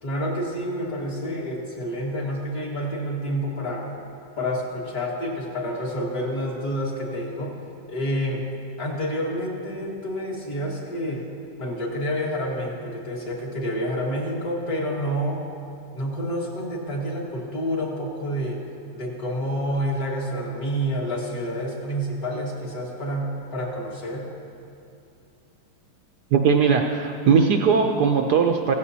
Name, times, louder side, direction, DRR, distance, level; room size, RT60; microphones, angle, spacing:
voice 1, 0.0-3.9 4.4-7.5 7.9-8.4 8.8-11.3 11.6-15.4 15.9-18.6 18.9-24.3, equal, 50° left, -3 dB, 2.2 m, -28 dB
voice 2, 26.3-28.7, right 6 dB, 70° right, 3 dB, 1.1 m, -19 dB
16.0 x 14.5 x 2.8 m, 2.6 s
omnidirectional pair, 2.1 m